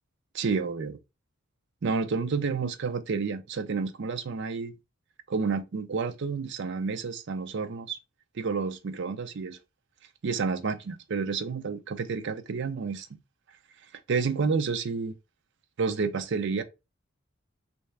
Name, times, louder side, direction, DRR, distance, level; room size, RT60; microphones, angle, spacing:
voice 1, 0.3-1.0 1.8-4.7 5.3-8.0 8.4-9.6 10.2-13.1 14.1-15.1 15.8-16.6, right 5 dB, 65° right, 0.5 m, -30 dB
3.2 x 2.7 x 3.2 m
head